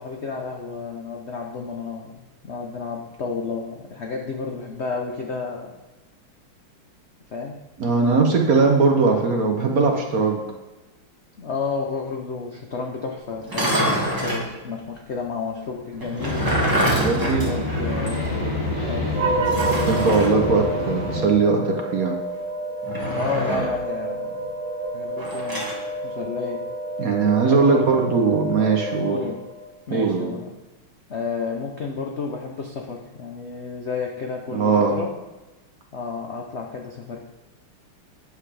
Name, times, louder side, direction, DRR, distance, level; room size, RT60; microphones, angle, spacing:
voice 1, 0.0-5.7 7.3-7.6 11.4-16.4 17.3-19.1 23.1-24.4 24.9-25.7 26.0-26.6 27.4-28.5 29.1-29.4 29.9-30.5 31.1-35.1 35.9-37.2, left 4 dB, 85° left, 1 dB, 0.6 m, -31 dB
voice 2, 7.8-10.4 17.0-17.5 18.2-18.9 19.9-22.2 27.0-29.2 29.9-30.3 34.5-35.0, right 4 dB, 55° right, 2 dB, 1.1 m, -20 dB
sound 1, 13.4-14.5 16.0-18.3 18.6-18.7 19.4-20.3 22.8-23.8 25.2-25.8, right 1 dB, 10° right, 1.2 m, -26 dB
sound 2, 16.2-21.2, left 1 dB, 25° left, 2.7 m, -27 dB
sound 3, 19.1-29.7, right 2 dB, 80° right, 1.8 m, -29 dB
10.0 x 7.2 x 3.3 m, 1.1 s
omnidirectional pair, 2.3 m